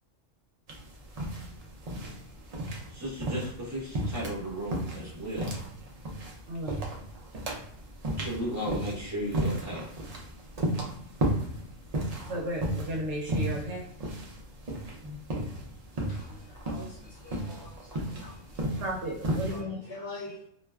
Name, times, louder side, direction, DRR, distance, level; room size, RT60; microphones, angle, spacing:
sound 1, 0.7-19.6, right 1 dB, 90° right, 0.3 m, -34 dB
voice 1, 2.9-5.6 6.6-7.0 8.2-9.9 15.0-15.2, equal, 15° right, -6 dB, 0.7 m, -35 dB
voice 2, 12.3-13.9 18.8-19.8, equal, 70° right, 0 dB, 0.9 m, -34 dB
voice 3, 16.1-18.8 19.5-20.5, left 2 dB, 60° left, -4 dB, 0.7 m, -45 dB
2.5 x 2.2 x 2.2 m, 0.72 s
omnidirectional pair, 1.3 m